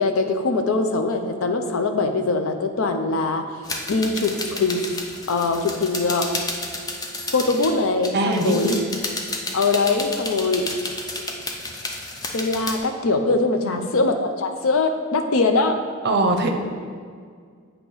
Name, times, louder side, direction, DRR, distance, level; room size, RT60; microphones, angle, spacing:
voice 1, 0.0-3.6 3.9-4.9 5.3-6.3 7.3-8.8 9.5-10.7 12.3-15.8, left 3 dB, 70° left, 6 dB, 0.5 m, -22 dB
sound 1, 3.6-7.7 8.0-12.8, left 2 dB, 15° left, 0.5 m, -31 dB
voice 2, 8.1-8.8 13.5-13.9 16.0-16.5, right 2 dB, 45° right, 4 dB, 0.6 m, -22 dB
8.3 x 2.9 x 5.4 m, 2.1 s
head